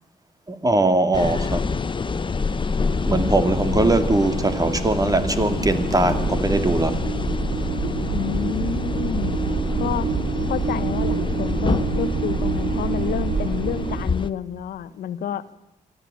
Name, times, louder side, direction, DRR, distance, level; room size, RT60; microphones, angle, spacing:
voice 1, 0.5-1.7 3.1-7.0, right 2 dB, 25° right, 9 dB, 2.4 m, -21 dB
sound 1, 1.1-14.3, left 4 dB, 35° left, 0.9 m, -27 dB
sound 2, 2.2-14.0, right 5 dB, 55° right, 4.5 m, -27 dB
voice 2, 8.1-9.3 9.8-10.1 10.5-15.4, left 9 dB, 85° left, 14 dB, 1.0 m, -29 dB
24.5 x 13.0 x 9.3 m, 0.99 s
cardioid pair, 75°, 15 cm